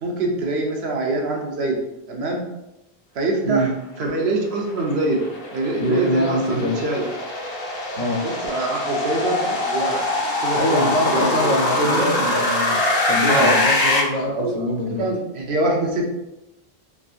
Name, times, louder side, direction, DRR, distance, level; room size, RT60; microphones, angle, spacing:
voice 1, 0.0-1.8 2.1-2.4 3.1-3.7 4.0-7.1 8.2-10.0 10.4-11.5 11.9-12.1 13.3-13.5 14.3-14.7 15.0-16.1, right 2 dB, 85° right, 0 dB, 0.9 m, -24 dB
sound 1, 4.4-14.0, left 2 dB, 75° left, 0.9 m, -23 dB
voice 2, 5.8-6.8 8.0-8.2 10.5-12.8 13.1-15.1, equal, 50° left, -1 dB, 0.6 m, -23 dB
3.4 x 2.5 x 2.4 m, 0.93 s
omnidirectional pair, 1.0 m